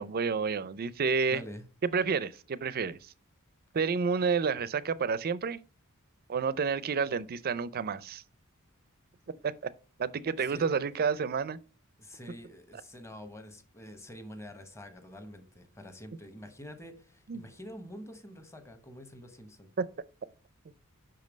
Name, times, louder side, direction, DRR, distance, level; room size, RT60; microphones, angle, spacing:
voice 1, 0.0-1.4 1.9-3.1 3.7-5.6 6.3-8.2 9.4-9.5 10.0-11.6 17.3-17.4, right 5 dB, 45° right, 0.4 m, -30 dB
voice 2, 1.3-1.6 10.4-10.7 12.0-19.7, equal, 15° left, 1.0 m, -47 dB
5.7 x 5.3 x 5.1 m
head